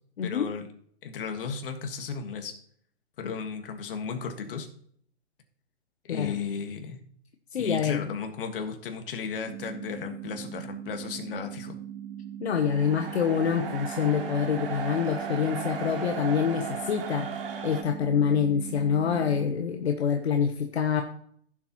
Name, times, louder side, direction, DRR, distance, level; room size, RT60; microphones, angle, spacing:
voice 1, 0.2-0.7 1.0-2.5 3.2-4.7 6.1-7.0 7.5-11.8, left 6 dB, 50° left, 6 dB, 1.7 m, -35 dB
voice 2, 7.5-8.1 12.4-17.3 17.6-21.0, left 7 dB, 65° left, 5 dB, 1.1 m, -26 dB
sound 1, 9.5-19.5, right 10 dB, 20° right, 0.9 m, -40 dB
sound 2, 12.6-17.8, right 6 dB, 55° right, 2.5 m, -36 dB
15.0 x 7.4 x 3.0 m, 0.63 s
hypercardioid pair, 140°, 34 cm